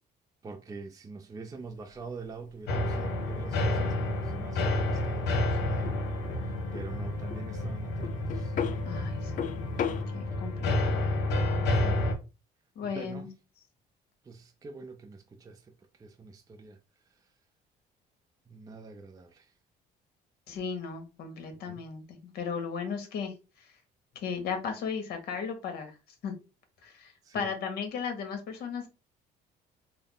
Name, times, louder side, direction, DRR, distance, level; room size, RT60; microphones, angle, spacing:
voice 1, 0.4-6.0 6.4-8.6 11.5-12.0 12.8-13.3 14.2-16.8 17.1-17.3 18.5-19.5 21.7-21.8 27.2-27.6, right 4 dB, 20° right, 0.4 m, -45 dB
sound 1, 1.6-10.0, left 8 dB, 50° left, 0.4 m, -38 dB
sound 2, 2.7-12.1, left 1 dB, 90° left, 0.9 m, -30 dB
voice 2, 8.8-9.3 10.1-11.1 12.7-13.3 20.5-23.3 24.1-25.9 26.2-26.3 26.8-28.9, left 6 dB, 70° left, 1.3 m, -36 dB
3.7 x 2.1 x 3.7 m
cardioid pair, 110°, 17 cm